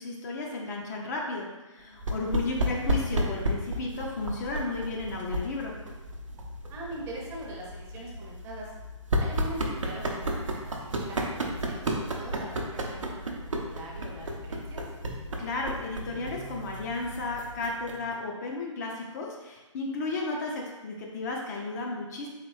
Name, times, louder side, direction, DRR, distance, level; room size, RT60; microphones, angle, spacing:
voice 1, 0.0-5.7 15.4-22.3, left 3 dB, 35° left, -1 dB, 0.5 m, -33 dB
sound 1, 2.0-18.1, right 1 dB, 75° right, 0.6 m, -33 dB
voice 2, 6.7-8.7 9.2-14.8, right 2 dB, 15° right, -3 dB, 0.7 m, -42 dB
4.0 x 2.9 x 3.2 m, 1.1 s
figure-of-eight pair, 130°, 16 cm